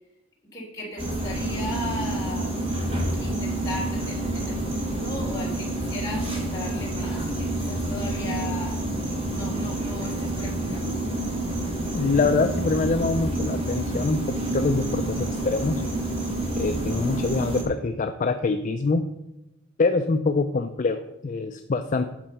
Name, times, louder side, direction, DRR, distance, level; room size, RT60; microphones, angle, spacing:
voice 1, 0.5-2.5 2.8-8.8 9.3-11.0, left 1 dB, 20° left, -6 dB, 3.2 m, -37 dB
sound 1, 1.0-17.6, right 1 dB, 30° right, 2.0 m, -28 dB
voice 2, 11.9-15.8 16.6-19.1 19.8-22.1, left 3 dB, 40° left, 7 dB, 0.4 m, -25 dB
8.9 x 5.6 x 5.4 m, 0.95 s
head